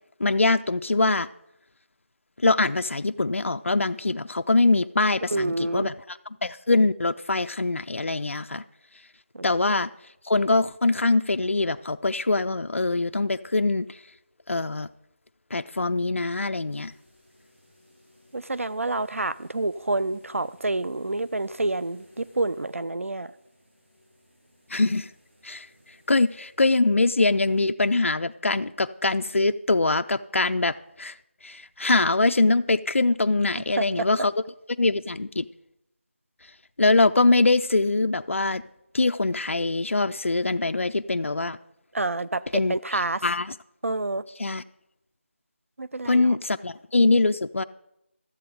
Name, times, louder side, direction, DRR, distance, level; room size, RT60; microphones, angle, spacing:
voice 1, 0.2-1.3 2.4-8.6 9.4-9.9 10.2-14.0 14.5-14.9 15.5-16.9 24.7-25.1 25.4-25.7 26.1-31.1 31.4-34.3 34.8-35.4 36.8-38.6 38.9-41.6 42.5-43.5 44.4-44.6 46.1-47.6, left 3 dB, 75° left, 9 dB, 0.5 m, -23 dB
voice 2, 5.3-5.9 9.3-9.5 18.3-23.3 33.8-34.1 41.9-42.4 42.7-43.2 43.8-44.2 45.8-46.4, right 2 dB, 85° right, 15 dB, 0.5 m, -28 dB
sound 1, 16.7-26.5, left 1 dB, 65° right, 5.3 m, -59 dB
13.5 x 7.7 x 5.1 m, 0.83 s
figure-of-eight pair, 175°, 7 cm